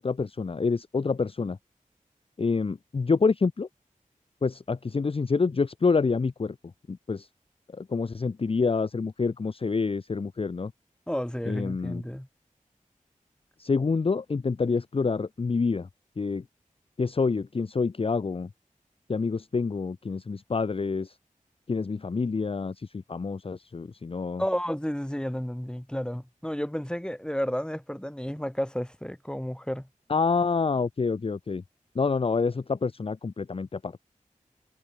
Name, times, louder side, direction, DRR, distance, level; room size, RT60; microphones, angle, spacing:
voice 1, 0.0-1.6 2.4-3.7 4.4-6.6 6.9-7.3 7.7-10.7 11.5-12.0 13.6-15.9 16.2-16.4 17.0-18.5 19.1-21.1 21.7-24.4 30.1-31.6 31.9-33.9, left 4 dB, 40° left, 0.5 m, -27 dB
voice 2, 11.1-12.3 24.4-29.9, equal, 5° left, 5.2 m, -31 dB
wide cardioid pair, 65°, 14 cm